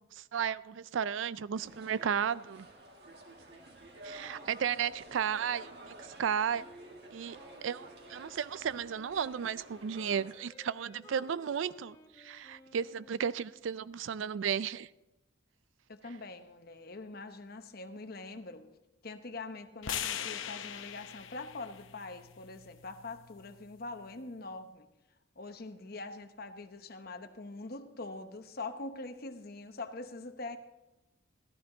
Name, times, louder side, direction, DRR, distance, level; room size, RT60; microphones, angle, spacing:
voice 1, 0.1-2.7 4.0-6.6 7.1-7.4 7.6-14.9, right 7 dB, 75° right, 18 dB, 0.4 m, -34 dB
sound 1, 1.5-10.3, right 1 dB, 55° right, 1.7 m, -51 dB
Wind instrument woodwind instrument, 8.6-13.7, left 2 dB, 25° left, 1.3 m, -58 dB
voice 2, 15.9-18.7 19.0-24.9 25.4-30.6, left 3 dB, 50° left, 8 dB, 0.9 m, -43 dB
sound 2, 19.8-24.0, left 9 dB, 80° left, 0.7 m, -41 dB
14.5 x 13.0 x 3.9 m, 0.96 s
head